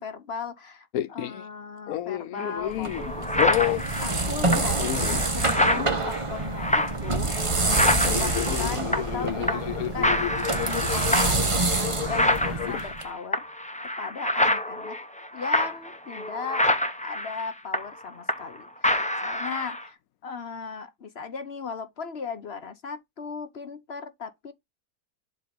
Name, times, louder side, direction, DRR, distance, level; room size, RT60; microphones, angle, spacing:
voice 1, 0.0-10.2 10.5-13.4 14.0-15.0 15.3-16.6 17.0-18.7 19.2-24.5, left 5 dB, 45° left, 1.0 m, -37 dB
sound 1, 0.9-1.4 1.9-3.1 3.4-3.9 4.6-5.5 5.7-6.0 8.0-12.9, left 14 dB, 70° left, 1.0 m, -31 dB
sound 2, 2.4-2.5 2.9-9.2 9.5-9.8 10.0-18.6 18.8-19.9, left 1 dB, 5° left, 0.6 m, -27 dB
sound 3, 2.7-13.0, right 3 dB, 25° right, 0.9 m, -27 dB
7.7 x 2.9 x 5.1 m
omnidirectional pair, 1.7 m